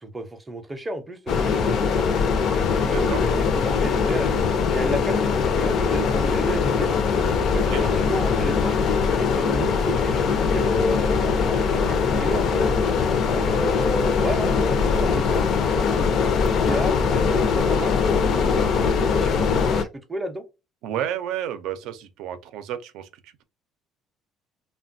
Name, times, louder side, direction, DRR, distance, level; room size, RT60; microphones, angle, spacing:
voice 1, 0.0-2.2 2.7-4.4 4.7-6.9 7.4-8.7 9.1-12.9 13.3-16.1 16.4-19.7 20.1-20.4, right 1 dB, 15° right, 0.5 m, -32 dB
sound 1, 1.3-19.8, left 5 dB, 50° left, 0.5 m, -21 dB
voice 2, 2.9-3.2 7.7-7.9 20.8-23.4, right 10 dB, 75° right, 0.5 m, -31 dB
3.1 x 2.2 x 2.5 m
cardioid pair, 140°, 0 cm